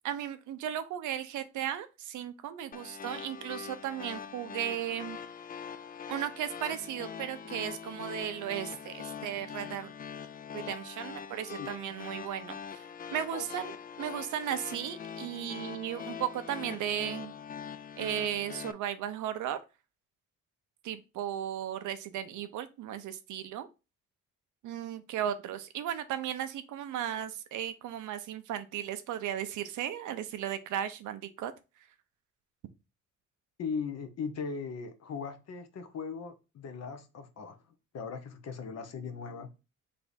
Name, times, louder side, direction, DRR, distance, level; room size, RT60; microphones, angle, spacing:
voice 1, 0.0-5.2 6.1-9.9 10.5-12.8 13.1-17.3 18.0-19.6 20.8-23.7 24.6-31.5, right 10 dB, 75° right, 0.6 m, -36 dB
sound 1, 2.7-18.7, left 7 dB, 30° left, 0.4 m, -43 dB
voice 2, 13.1-13.6 33.6-37.6 37.9-39.5, left 5 dB, 55° left, 0.8 m, -39 dB
3.4 x 3.4 x 4.0 m
cardioid pair, 90°, 30 cm